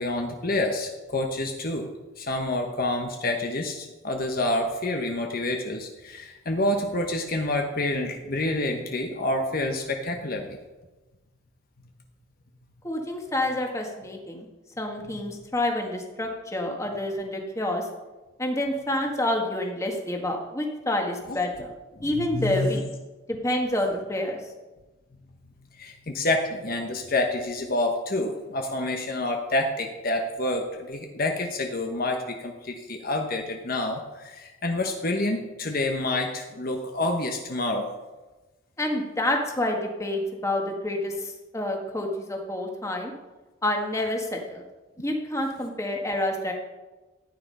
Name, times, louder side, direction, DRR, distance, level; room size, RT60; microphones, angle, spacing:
voice 1, 0.0-1.9 2.2-10.6 22.2-22.8 25.8-37.9, left 2 dB, 45° left, 3 dB, 1.1 m, -28 dB
voice 2, 12.8-14.5 14.8-17.9 18.4-21.7 22.0-22.8 23.3-24.4 38.8-43.1 43.6-44.6 45.0-46.5, left 1 dB, 15° left, 1 dB, 1.6 m, -28 dB
13.5 x 9.7 x 5.5 m, 1.2 s
head